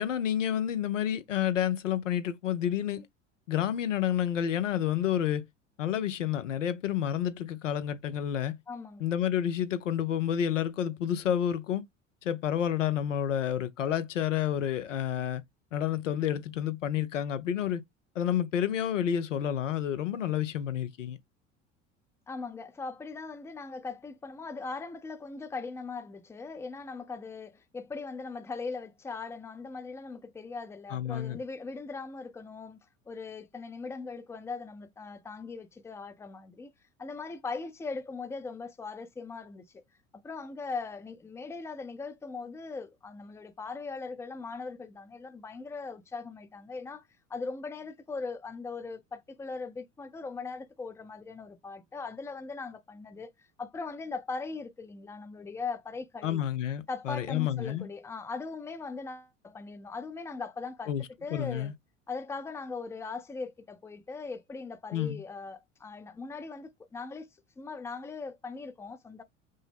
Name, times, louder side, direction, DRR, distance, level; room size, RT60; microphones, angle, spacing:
voice 1, 0.0-3.1 3.5-5.5 5.8-8.6 9.0-11.8 12.2-15.4 15.7-17.8 18.1-21.2 30.9-31.4 56.2-57.9 60.9-61.7 64.9-65.2, left 10 dB, 75° left, 0.7 m, -29 dB
voice 2, 8.7-9.0 22.3-32.8 33.1-36.7 37.0-39.7 40.1-47.0 47.3-56.4 56.9-60.9 61.2-61.7 62.1-67.3 67.6-69.2, left 4 dB, 5° left, 0.6 m, -40 dB
5.3 x 2.0 x 3.4 m
figure-of-eight pair, 70°, 38 cm